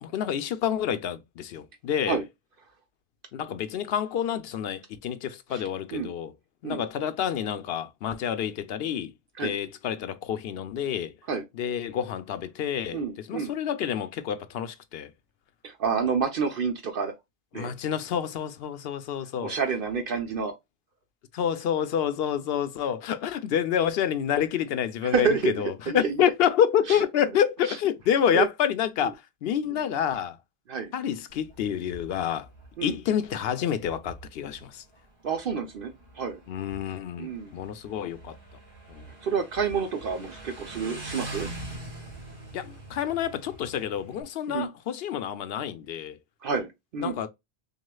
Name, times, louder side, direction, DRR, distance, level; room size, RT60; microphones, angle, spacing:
voice 1, 0.0-2.2 3.3-6.3 6.6-9.1 9.4-11.1 11.6-13.0 13.3-15.1 17.5-19.5 21.3-30.4 30.9-32.5 32.8-34.8 36.5-38.4 38.9-39.1 42.5-46.2 47.0-47.3, left 9 dB, 70° left, 0.8 m, -28 dB
voice 2, 12.9-13.5 15.6-17.1 17.5-17.7 19.4-20.5 25.0-26.2 26.9-27.1 27.6-27.8 28.3-28.5 29.0-29.1 29.7-29.8 30.7-30.9 32.8-33.0 35.2-36.4 37.2-37.5 39.2-41.5 44.5-44.7 46.4-47.2, right 5 dB, 65° right, 0.8 m, -29 dB
Motorcycle, 31.3-44.2, right 2 dB, 40° right, 2.1 m, -44 dB
6.2 x 2.4 x 2.2 m
omnidirectional pair, 1.0 m